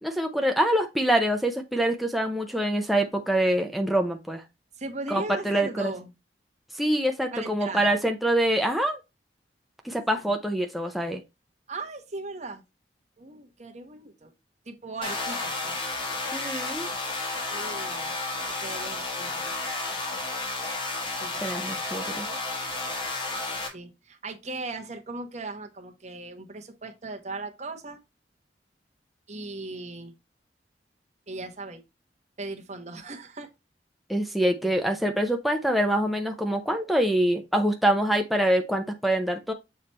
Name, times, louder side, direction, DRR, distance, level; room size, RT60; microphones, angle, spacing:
voice 1, 0.0-4.4 5.1-5.9 6.7-9.0 9.8-11.2 16.3-16.9 21.4-22.3 34.1-39.5, right 1 dB, ahead, 0.5 m, -25 dB
voice 2, 4.8-6.1 7.3-8.0 11.7-12.6 13.2-14.3 14.7-15.7 17.5-18.1 18.4-19.5 21.2-21.8 23.7-28.0 29.3-30.1 31.3-31.8 32.4-33.5, right 2 dB, 40° right, 1.1 m, -38 dB
sound 1, 15.0-23.7, left 2 dB, 30° left, 1.5 m, -32 dB
6.9 x 3.2 x 4.2 m
head